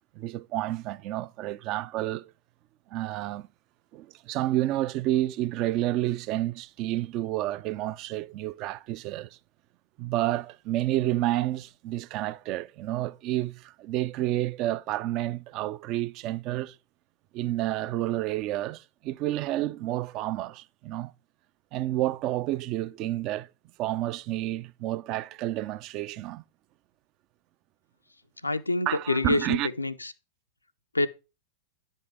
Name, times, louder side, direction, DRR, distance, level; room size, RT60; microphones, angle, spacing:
voice 1, 0.1-2.3 2.9-3.5 3.9-9.4 10.0-16.8 17.3-21.1 21.7-23.5 23.8-26.4 28.9-29.7, right 15 dB, 40° right, 0.3 m, -30 dB
voice 2, 28.4-30.1 30.9-31.1, left 2 dB, 80° left, 0.5 m, -27 dB
9.8 x 5.4 x 3.4 m
figure-of-eight pair, 90°, 0 cm